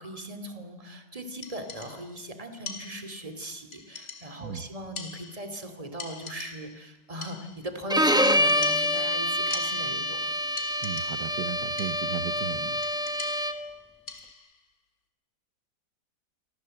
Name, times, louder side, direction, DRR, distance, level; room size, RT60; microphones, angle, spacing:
voice 1, 0.0-10.2, right 1 dB, 20° right, 8 dB, 2.7 m, -39 dB
sound 1, 1.4-2.2 2.7-3.3 3.7-4.5 5.0-5.7 6.0-6.9 7.2-7.8 8.3-10.2 10.6-11.4 11.8-12.3 12.8-14.6, left 4 dB, 50° left, 2.9 m, -43 dB
Bowed string instrument, 7.9-13.7, equal, 5° right, 0.7 m, -26 dB
voice 2, 10.8-12.8, right 8 dB, 70° right, 10 dB, 1.6 m, -35 dB
28.0 x 24.5 x 7.8 m, 1.2 s
omnidirectional pair, 1.9 m